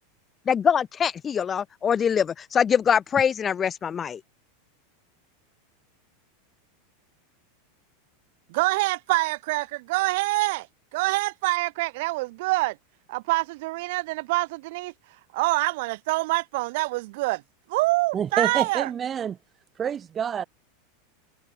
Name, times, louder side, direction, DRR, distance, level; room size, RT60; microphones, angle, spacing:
voice 1, 0.5-4.2, left 7 dB, 25° left, 0.6 m, -23 dB
voice 2, 8.5-10.7 10.9-12.8 13.1-14.9 15.3-17.4 17.7-18.9, right 22 dB, 55° right, 2.7 m, -25 dB
voice 3, 18.1-19.4 19.8-20.4, right 8 dB, 25° right, 4.3 m, -27 dB
figure-of-eight pair, 85°, 0 cm